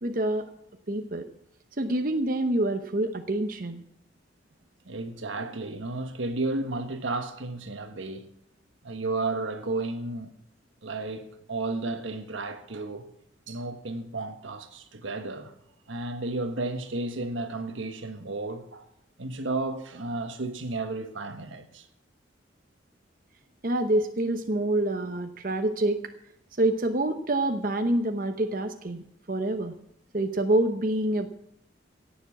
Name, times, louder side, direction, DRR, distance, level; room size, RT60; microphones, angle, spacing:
voice 1, 0.0-0.5 0.9-1.3 1.8-3.8 23.6-26.0 26.6-29.7 30.1-31.3, right 1 dB, 45° right, 0.9 m, -26 dB
voice 2, 4.8-8.3 8.8-10.3 10.8-13.1 13.5-15.5 15.9-18.9 19.2-21.9, right 2 dB, 85° right, 1.4 m, -33 dB
17.0 x 7.3 x 7.3 m
head